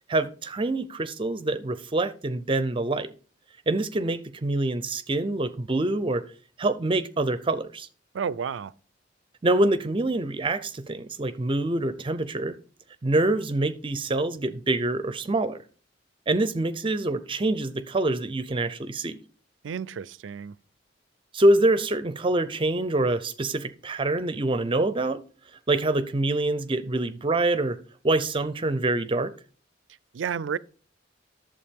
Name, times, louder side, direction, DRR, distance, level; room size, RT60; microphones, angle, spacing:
voice 1, 0.1-3.1 3.7-6.2 6.6-7.9 9.4-12.6 13.0-15.6 16.3-19.2 21.3-25.2 25.7-27.8 28.0-29.3, right 2 dB, 30° right, 0.5 m, -25 dB
voice 2, 8.1-8.7 19.6-20.5 30.1-30.6, right 7 dB, 85° right, 0.4 m, -31 dB
11.5 x 7.2 x 3.6 m
head